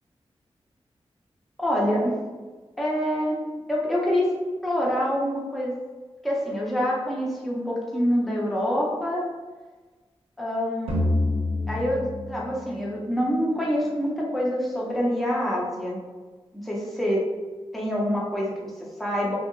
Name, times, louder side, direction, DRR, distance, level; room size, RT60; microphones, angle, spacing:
voice 1, 1.6-2.1 2.8-3.4 3.7-4.3 4.6-5.8 6.2-9.2 10.4-11.2 11.7-16.0 16.5-17.2 17.7-19.4, equal, ahead, -5 dB, 0.5 m, -26 dB
sound 1, 10.9-14.1, left 2 dB, 70° right, 0.6 m, -28 dB
2.7 x 2.7 x 2.5 m, 1.3 s
wide cardioid pair, 175°, 10 cm